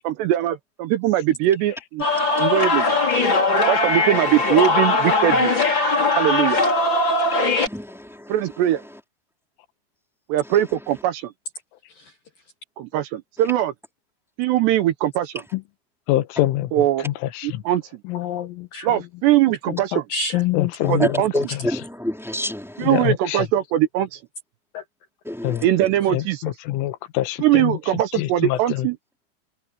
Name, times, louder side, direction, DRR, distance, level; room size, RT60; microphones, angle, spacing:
voice 1, 0.1-2.0 2.3-2.9 3.7-5.5 6.1-6.6 8.3-8.8 10.3-11.3 12.8-13.7 14.4-15.3 16.7-17.1 17.4-17.8 18.8-20.0 20.9-21.3 22.8-24.2 25.6-26.4 27.4-29.0, right 13 dB, 75° right, 2.8 m, -21 dB
sound 1, 2.0-7.7, left 3 dB, 25° left, 4.6 m, -20 dB
voice 2, 7.7-8.6 8.9-9.0 10.4-10.6 20.8-23.0 25.2-25.7, left 1 dB, ahead, 3.4 m, -29 dB
voice 3, 16.1-17.6 20.5-21.2 22.8-23.5 25.4-25.7 26.1-27.8 28.1-28.9, left 15 dB, 90° left, 3.6 m, -25 dB
voice 4, 18.1-18.9 19.7-21.0 24.7-24.8, left 9 dB, 70° left, 2.2 m, -27 dB
omnidirectional pair, 5.6 m